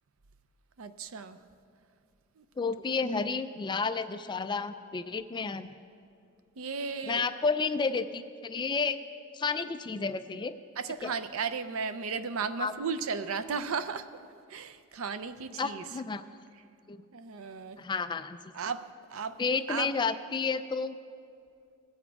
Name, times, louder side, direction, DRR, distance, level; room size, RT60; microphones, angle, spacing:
voice 1, 0.8-1.4 2.4-2.5 6.6-7.2 10.8-14.1 14.5-15.8 17.1-17.8 18.5-19.4 19.7-19.9, right 5 dB, 75° right, 12 dB, 0.5 m, -35 dB
voice 2, 2.6-5.7 7.1-9.0 9.3-10.5 11.0-11.1 12.6-12.7 15.6-16.2 16.9-17.0 17.8-18.4 19.4-21.0, left 4 dB, 20° left, 11 dB, 0.3 m, -31 dB
18.5 x 7.2 x 4.7 m, 2.4 s
head